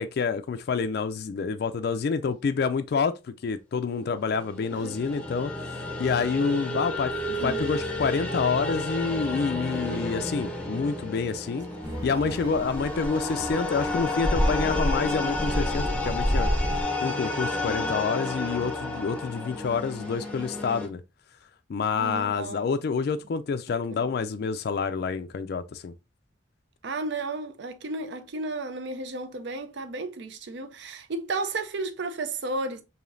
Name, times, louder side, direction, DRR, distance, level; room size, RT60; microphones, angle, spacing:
voice 1, 0.0-5.7 6.0-11.7 12.0-16.5 17.0-21.0 21.7-25.9, left 5 dB, 55° left, 0.3 m, -28 dB
sound 1, 4.4-20.9, left 2 dB, 5° left, 0.7 m, -31 dB
voice 2, 11.7-12.6 17.6-17.9 21.9-22.7 23.9-24.1 26.8-32.8, right 3 dB, 60° right, 0.5 m, -34 dB
sound 2, 11.8-16.8, equal, 15° right, 1.1 m, -29 dB
4.9 x 2.7 x 2.5 m
head